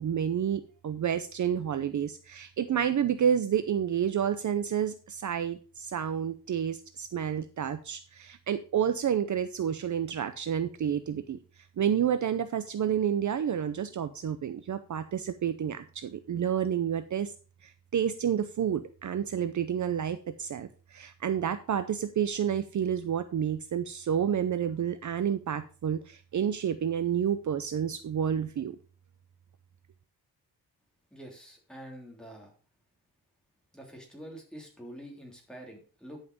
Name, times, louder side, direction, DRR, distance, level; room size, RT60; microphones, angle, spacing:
voice 1, 0.0-11.4 11.8-17.3 17.9-28.7, right 8 dB, 50° right, 10 dB, 0.7 m, -29 dB
voice 2, 31.1-32.5 33.7-36.2, equal, ahead, 0 dB, 3.2 m, -46 dB
11.0 x 5.8 x 5.2 m, 0.36 s
wide cardioid pair, 145°, 38 cm